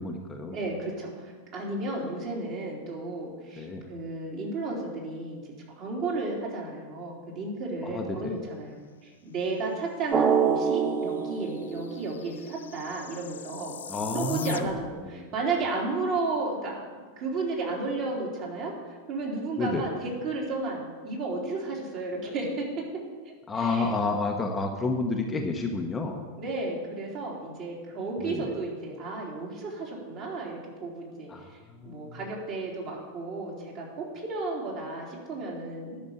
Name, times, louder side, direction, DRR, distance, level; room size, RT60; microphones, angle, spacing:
voice 1, 0.0-0.6 3.5-3.9 7.8-8.4 13.9-14.7 15.0-15.3 19.6-19.9 23.5-26.2 28.2-28.5 31.3-32.2, left 3 dB, 15° left, 2 dB, 1.0 m, -30 dB
voice 2, 0.5-13.8 14.1-16.8 17.2-22.9 23.3-23.9 26.4-31.6 31.8-36.0, right 3 dB, 40° right, -3 dB, 3.5 m, -33 dB
Drum, 10.1-12.7, right 6 dB, 20° right, 0.7 m, -26 dB
sound 1, 10.6-10.7 10.9-15.1, left 8 dB, 65° left, 0.5 m, -42 dB
11.0 x 6.6 x 8.5 m, 1.5 s
figure-of-eight pair, 90°, 0 cm